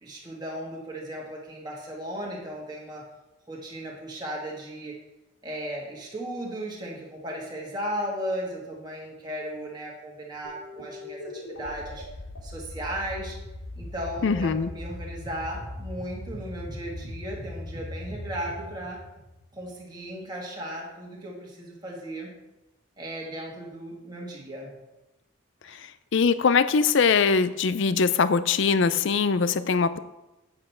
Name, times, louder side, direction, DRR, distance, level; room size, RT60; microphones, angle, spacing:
voice 1, 0.0-3.1 3.5-5.0 5.4-12.0 12.4-13.4 13.8-19.0 19.5-22.3 23.0-24.7 25.7-25.8, equal, 20° right, -3 dB, 1.6 m, -36 dB
sound 1, 10.4-19.8, left 1 dB, 75° left, 2.4 m, -39 dB
voice 2, 14.2-14.7 26.1-30.0, left 5 dB, 60° left, 14 dB, 0.4 m, -22 dB
8.7 x 7.6 x 4.4 m, 0.99 s
head